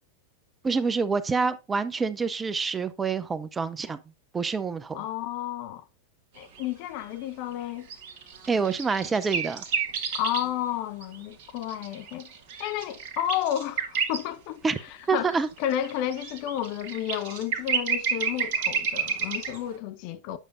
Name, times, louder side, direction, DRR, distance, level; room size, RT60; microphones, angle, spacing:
voice 1, 0.6-4.0 4.3-5.0 8.5-9.6 14.6-14.8 15.1-15.5, right 5 dB, 15° right, 0.5 m, -27 dB
voice 2, 4.9-5.8 6.4-7.9 10.1-12.3 12.6-14.6 15.1-20.4, left 11 dB, 45° left, 0.7 m, -31 dB
sound 1, 6.4-6.6 7.9-10.5 11.0-14.2 14.8-14.9 15.3-19.6, right 6 dB, 50° right, 1.4 m, -30 dB
9.1 x 6.5 x 2.6 m
figure-of-eight pair, 90°, 0 cm